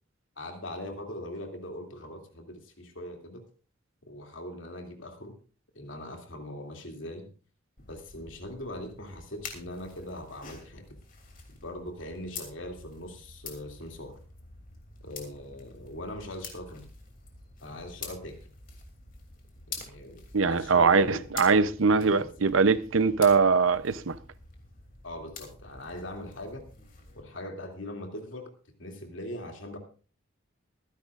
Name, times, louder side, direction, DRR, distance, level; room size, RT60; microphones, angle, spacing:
voice 1, 0.4-3.4 4.1-5.4 5.7-7.3 7.9-10.8 11.6-14.2 15.0-16.8 17.6-18.4 19.7-21.3 21.9-22.3 25.0-26.7 27.1-28.5 28.8-29.8, left 1 dB, 70° left, 2.6 m, -41 dB
sound 1, 7.8-27.2, left 5 dB, 45° left, 2.9 m, -47 dB
voice 2, 20.3-24.2, right 4 dB, 80° right, 0.7 m, -22 dB
24.0 x 10.5 x 2.5 m
head